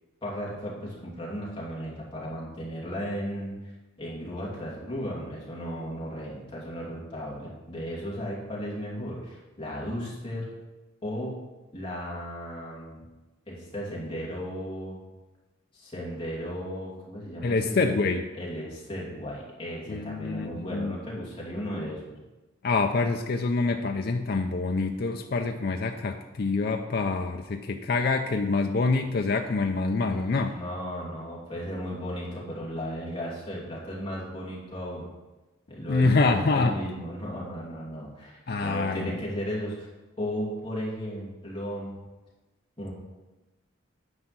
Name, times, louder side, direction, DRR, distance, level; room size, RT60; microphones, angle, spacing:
voice 1, 0.2-3.5 4.0-10.5 11.0-11.4 11.7-13.0 13.5-15.0 15.7-18.1 18.3-22.0 30.5-35.1 35.7-39.9 40.2-42.0 42.8-42.9, equal, 25° left, -5 dB, 2.7 m, -35 dB
voice 2, 17.4-18.3 19.9-20.9 22.6-30.5 35.9-36.7 38.5-39.2, left 3 dB, 50° left, 5 dB, 0.4 m, -26 dB
9.6 x 5.3 x 6.0 m, 1.1 s
head